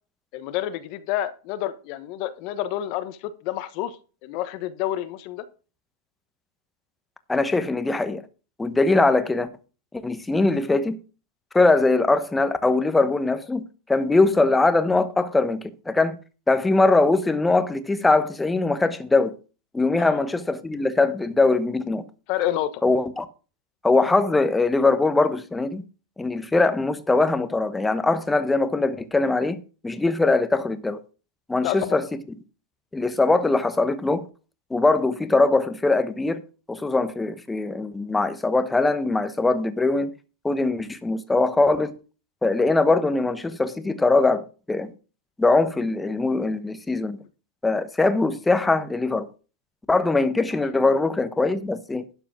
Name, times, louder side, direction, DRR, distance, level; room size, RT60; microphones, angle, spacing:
voice 1, 0.3-4.0 4.2-5.4 20.0-20.3 22.3-22.8 31.6-32.0, left 13 dB, 55° left, 1.1 m, -29 dB
voice 2, 7.3-8.2 8.6-9.5 10.0-11.0 11.5-13.6 13.9-16.2 16.5-19.3 19.7-22.0 22.8-23.3 23.8-25.8 26.2-29.6 29.8-31.0 31.5-32.1 32.9-34.3 34.7-36.4 36.7-40.1 40.4-42.0 42.4-44.9 45.4-47.2 47.6-49.3 49.9-52.0, left 3 dB, 10° left, 1.1 m, -21 dB
12.0 x 5.0 x 6.1 m
supercardioid pair, 120°, 0 cm